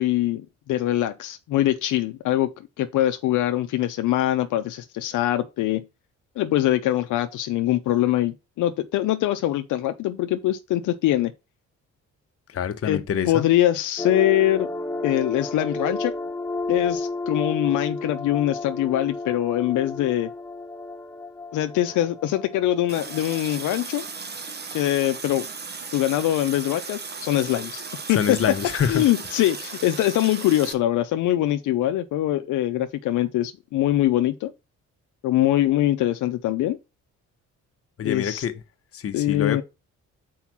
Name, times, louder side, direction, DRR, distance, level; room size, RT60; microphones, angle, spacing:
voice 1, 0.0-2.5 2.8-5.8 6.4-11.3 12.8-14.7 15.0-16.2 16.7-20.3 21.5-24.1 24.7-25.5 25.9-27.8 28.1-28.4 28.9-34.5 35.2-36.8 38.0-38.4 39.1-39.6, left 13 dB, 80° left, 0.6 m, -23 dB
voice 2, 12.5-13.4 28.1-29.0 38.0-38.5 38.9-39.6, left 8 dB, 50° left, 1.0 m, -26 dB
sound 1, 14.0-23.8, left 2 dB, 10° left, 0.3 m, -32 dB
Water tap faucet, 22.9-30.7, right 4 dB, 35° right, 1.1 m, -36 dB
5.7 x 4.7 x 6.0 m
cardioid pair, 90°, 30 cm